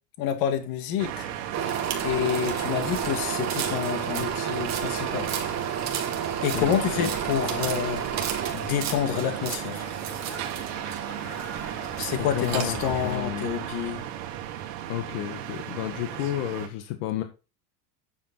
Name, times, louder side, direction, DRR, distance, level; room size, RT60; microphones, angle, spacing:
voice 1, 0.2-1.3 2.0-5.3 6.4-8.0 8.5-9.8 12.0-14.0, left 9 dB, 50° left, 2.1 m, -28 dB
sound 1, 1.0-16.7, right 11 dB, 80° right, 2.4 m, -35 dB
sound 2, 1.5-13.2, right 8 dB, 35° right, 2.3 m, -32 dB
voice 2, 6.5-7.1 12.2-13.5 14.9-17.2, left 13 dB, 70° left, 1.6 m, -31 dB
sound 3, 6.5-13.2, right 1 dB, 5° left, 4.0 m, -45 dB
10.0 x 7.5 x 4.1 m
cardioid pair, 155°, 46 cm